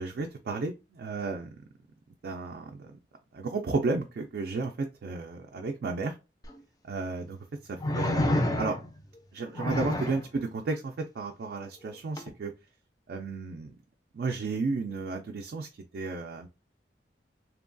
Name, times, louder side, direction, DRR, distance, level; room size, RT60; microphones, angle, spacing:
voice 1, 0.0-1.5 2.2-2.9 3.3-6.1 6.8-7.4 7.6-8.8 9.3-12.5 13.1-13.8 14.1-16.5, right 3 dB, 60° right, 3 dB, 0.3 m, -33 dB
sound 1, 6.4-6.5 7.8-9.0 9.6-10.3 12.2-12.3, left 1 dB, 20° left, 0.3 m, -28 dB
2.8 x 2.2 x 2.5 m, 0.28 s
head